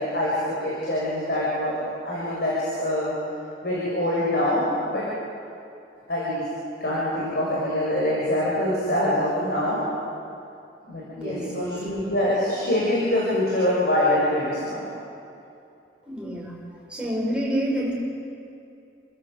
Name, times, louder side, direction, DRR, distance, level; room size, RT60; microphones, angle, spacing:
voice 1, 0.0-3.1 3.6-5.1 6.1-6.4 6.8-9.8 10.9-14.9, left 1 dB, 60° left, -7 dB, 6.6 m, -24 dB
voice 2, 11.2-11.8 16.0-17.9, equal, 5° right, -4 dB, 5.6 m, -29 dB
29.5 x 15.0 x 8.0 m, 2.6 s
head